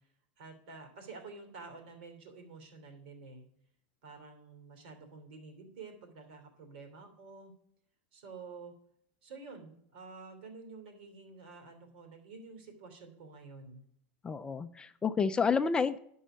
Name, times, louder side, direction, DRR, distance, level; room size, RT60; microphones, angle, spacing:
voice 1, 0.4-3.4 4.0-7.5 8.1-8.7 9.2-13.8, right 4 dB, 75° right, 4 dB, 3.2 m, -49 dB
voice 2, 14.2-16.0, left 5 dB, 15° left, 11 dB, 0.4 m, -29 dB
10.5 x 5.5 x 6.2 m, 0.70 s
supercardioid pair, 140°, 6 cm